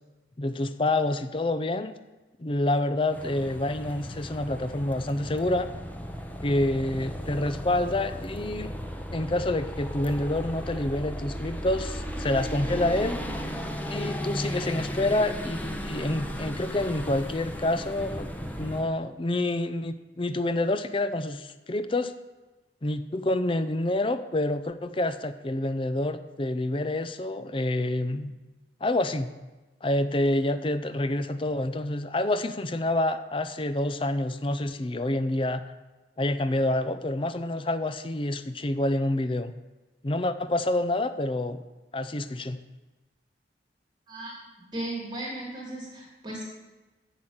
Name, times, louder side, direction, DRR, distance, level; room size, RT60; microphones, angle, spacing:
voice 1, 0.4-1.9 2.4-5.7 6.4-8.7 9.1-13.2 13.9-18.3 18.6-22.1 22.8-28.3 28.8-29.3 29.8-35.6 36.2-39.5 40.0-41.6 41.9-42.6, left 1 dB, 30° left, 11 dB, 0.6 m, -27 dB
sound 1, 3.1-18.9, equal, 10° left, 1.1 m, -35 dB
voice 2, 44.7-46.4, right 1 dB, 25° right, -3 dB, 2.9 m, -36 dB
10.5 x 6.2 x 8.9 m, 1.2 s
head